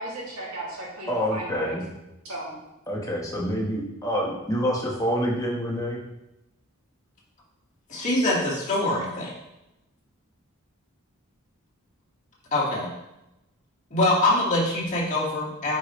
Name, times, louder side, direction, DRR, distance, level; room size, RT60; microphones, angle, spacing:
voice 1, 0.0-1.8 2.2-2.5, right 1 dB, 75° right, -5 dB, 2.7 m, -35 dB
voice 2, 1.1-1.9 2.9-6.0, equal, 15° left, -3 dB, 1.4 m, -27 dB
voice 3, 7.9-9.3 12.5-12.9 13.9-15.8, left 1 dB, 35° left, -6 dB, 2.3 m, -24 dB
9.5 x 5.2 x 3.3 m, 0.94 s
head